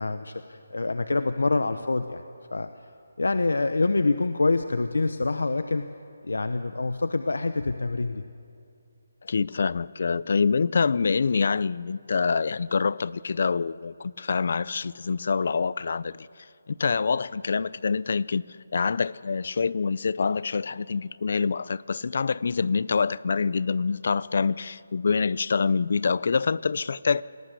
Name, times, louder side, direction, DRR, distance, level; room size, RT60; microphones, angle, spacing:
voice 1, 0.0-2.2 2.5-2.7 3.2-5.9 6.2-8.2, left 3 dB, 90° left, 10 dB, 1.1 m, -26 dB
voice 2, 9.2-16.3 16.7-27.2, left 5 dB, 50° left, 20 dB, 0.6 m, -26 dB
28.0 x 19.0 x 8.3 m, 2.5 s
hypercardioid pair, 170°, 0 cm